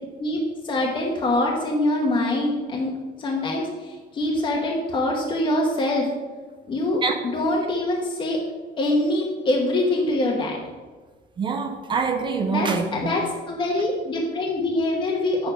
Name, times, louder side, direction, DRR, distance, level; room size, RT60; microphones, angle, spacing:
voice 1, 0.2-2.9 3.2-6.1 6.7-7.0 7.3-8.4 8.8-10.6 12.5-13.2 13.5-15.5, left 1 dB, 30° left, -2 dB, 1.2 m, -24 dB
voice 2, 11.4-13.2, right 5 dB, 25° right, 5 dB, 0.6 m, -25 dB
8.3 x 6.9 x 5.1 m, 1.3 s
cardioid pair, 175°, 18 cm